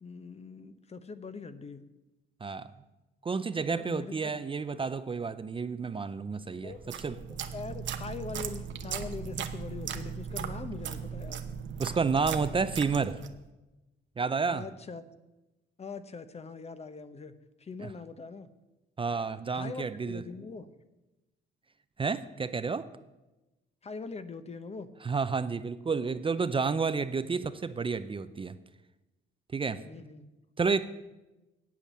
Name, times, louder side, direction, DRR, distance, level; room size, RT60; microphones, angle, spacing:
voice 1, 0.0-1.8 3.7-4.3 6.6-6.8 7.1-7.2 7.5-11.4 14.5-15.0 15.8-18.5 19.5-20.7 23.8-24.9 29.8-30.2, left 4 dB, 30° left, 12 dB, 0.8 m, -42 dB
voice 2, 3.2-7.2 11.8-13.2 14.2-14.6 17.8-17.9 19.0-20.2 22.0-22.9 25.0-28.6 29.5-29.8 30.6-30.9, right 5 dB, 25° right, 12 dB, 0.5 m, -30 dB
sound 1, 6.7-13.4, right 7 dB, 70° right, 0.9 m, -38 dB
8.6 x 8.4 x 7.3 m, 1.0 s
cardioid pair, 90°, 20 cm